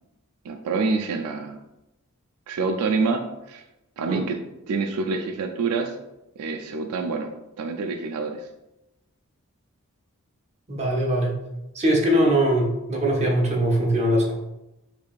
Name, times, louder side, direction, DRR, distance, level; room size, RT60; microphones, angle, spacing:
voice 1, 0.4-1.6 2.5-3.6 4.0-4.4 4.7-6.0 6.4-7.3 7.6-8.5, right 4 dB, 80° right, 5 dB, 0.3 m, -26 dB
voice 2, 10.7-11.3 11.7-14.3, right 1 dB, 30° right, -1 dB, 0.7 m, -21 dB
4.6 x 2.7 x 2.4 m, 0.92 s
head